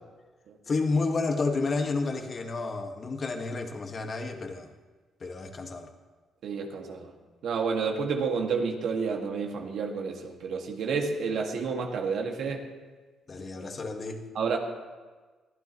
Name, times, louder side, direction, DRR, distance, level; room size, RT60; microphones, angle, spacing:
voice 1, 0.7-4.7 5.2-5.9 13.3-14.2, left 3 dB, 40° left, 4 dB, 1.7 m, -30 dB
voice 2, 6.4-7.1 7.4-12.7 14.4-14.6, right 5 dB, 70° right, 2 dB, 2.0 m, -30 dB
23.0 x 15.0 x 3.1 m, 1.3 s
cardioid pair, 90°, 0 cm